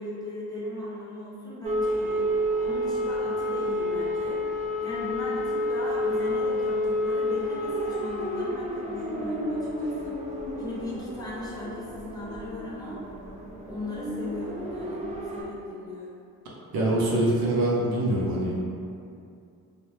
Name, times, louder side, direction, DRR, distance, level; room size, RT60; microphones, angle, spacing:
voice 1, 0.0-2.3 2.6-4.4 4.8-10.2 10.6-13.0 13.6-16.2, left 1 dB, 10° left, -8 dB, 0.8 m, -37 dB
sound 1, 1.6-15.4, left 1 dB, 20° right, 0.4 m, -30 dB
voice 2, 16.7-18.7, right 1 dB, 75° right, -4 dB, 0.7 m, -24 dB
2.1 x 2.1 x 2.9 m, 2.4 s
supercardioid pair, 60°, 36 cm